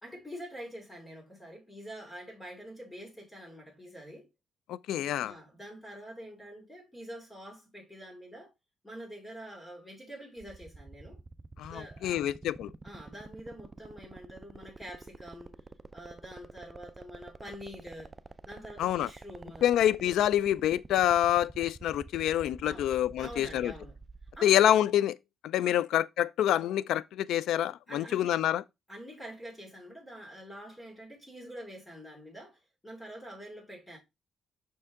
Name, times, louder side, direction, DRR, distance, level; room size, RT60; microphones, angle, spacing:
voice 1, 0.0-4.3 5.2-8.5 8.8-11.2 11.7-12.3 12.8-15.7 15.9-18.1 18.4-19.7 22.6-22.9 23.2-23.9 24.3-24.6 25.6-25.8 27.6-28.4 28.9-34.0, equal, 15° left, 2.6 m, -46 dB
voice 2, 4.7-5.3 11.6-12.7 18.8-19.1 19.6-23.7 24.4-25.2 25.4-28.6, left 11 dB, 80° left, 0.3 m, -27 dB
sound 1, 10.4-24.4, right 3 dB, 25° right, 0.5 m, -47 dB
6.1 x 4.4 x 3.6 m
cardioid pair, 90°, 0 cm